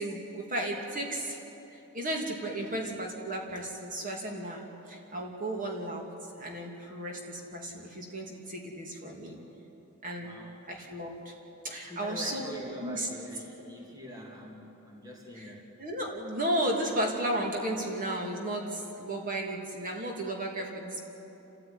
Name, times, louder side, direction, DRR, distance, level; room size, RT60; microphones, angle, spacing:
voice 1, 0.0-1.4 1.7-6.0 6.3-9.4 10.0-10.3 10.7-11.3 11.6-12.5 12.8-13.1 15.3-21.1, right 1 dB, 35° right, 0 dB, 2.8 m, -34 dB
voice 2, 10.2-10.5 11.9-15.6, equal, 15° right, -1 dB, 2.5 m, -44 dB
29.0 x 14.0 x 9.7 m, 3.0 s
head